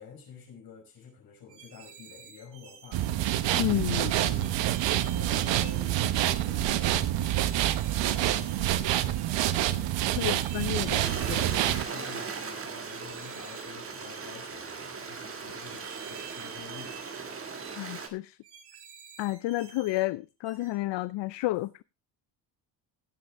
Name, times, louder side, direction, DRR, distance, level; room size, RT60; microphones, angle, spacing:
voice 1, 0.0-3.0 4.2-4.7 5.0-11.1 11.7-17.5, left 6 dB, 55° left, 5.5 m, -49 dB
sound 1, 1.5-3.1 3.5-3.8 4.3-5.9 6.3-6.6 7.1-8.7 9.1-9.4 10.0-11.6 11.9-12.2 12.8-14.4 14.8-15.1 15.6-17.2 17.5-17.9 18.4-20.0 20.4-20.7, right 10 dB, 60° right, 4.2 m, -49 dB
sound 2, 2.9-11.8, right 13 dB, 75° right, 1.0 m, -27 dB
voice 2, 3.5-4.1 10.2-11.5 17.7-18.4 19.2-21.8, left 17 dB, 75° left, 0.6 m, -31 dB
Stream, 11.0-18.1, right 5 dB, 30° right, 1.8 m, -38 dB
16.0 x 8.1 x 3.4 m
cardioid pair, 160°, 43 cm